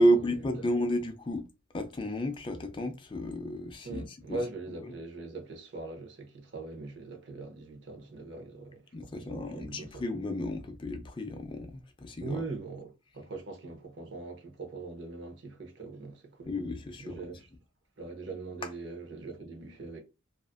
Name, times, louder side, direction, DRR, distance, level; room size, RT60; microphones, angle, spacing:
voice 1, 0.0-1.5 1.7-4.4 8.9-12.4 16.4-17.4, equal, 25° left, 0.4 m, -31 dB
voice 2, 3.8-10.0 12.2-16.5 17.0-17.5 18.0-20.0, right 3 dB, 60° right, 0.7 m, -41 dB
2.4 x 2.4 x 2.4 m
head